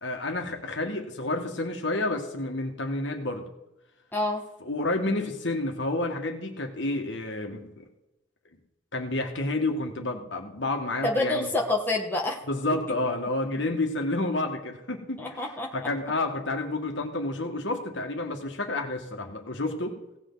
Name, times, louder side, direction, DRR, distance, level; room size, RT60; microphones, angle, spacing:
voice 1, 0.0-3.5 4.6-7.8 8.9-11.5 12.5-15.4 15.7-20.0, left 2 dB, 65° left, 3 dB, 1.8 m, -30 dB
voice 2, 4.1-4.4 11.0-12.4 15.2-15.7, left 2 dB, 10° left, -2 dB, 1.5 m, -27 dB
17.0 x 8.1 x 4.0 m, 0.92 s
head